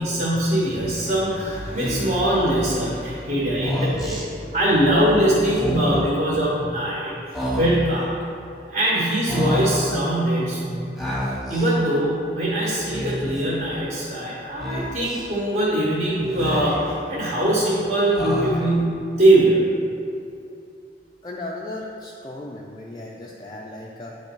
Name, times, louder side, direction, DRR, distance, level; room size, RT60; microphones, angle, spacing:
voice 1, 0.0-7.1 7.6-8.1 8.7-10.8 11.5-19.6, right 1 dB, 45° right, -6 dB, 1.2 m, -22 dB
Speech, 1.8-2.3 3.5-4.3 5.5-6.1 7.3-8.0 9.3-9.9 11.0-11.7 12.8-13.4 14.6-15.3 16.2-17.0 18.1-18.8, equal, ahead, 1.0 m, -28 dB
voice 2, 21.2-24.2, left 2 dB, 25° left, -3 dB, 0.4 m, -36 dB
8.4 x 3.1 x 4.5 m, 2.5 s
head